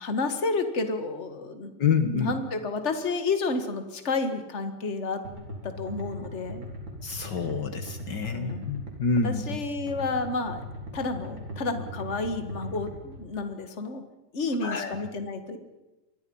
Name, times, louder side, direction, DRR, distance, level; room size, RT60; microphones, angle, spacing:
voice 1, 0.0-1.7 2.0-5.2 5.6-6.7 8.3-8.7 9.2-10.6 10.9-14.0 14.3-15.6, left 3 dB, 35° left, 8 dB, 2.1 m, -30 dB
voice 2, 1.8-2.3 7.0-9.6 14.6-15.0, left 5 dB, 65° left, 7 dB, 2.0 m, -27 dB
sound 1, 5.2-13.2, equal, 75° right, 5.2 m, -39 dB
27.5 x 22.0 x 5.6 m, 1.0 s
omnidirectional pair, 2.1 m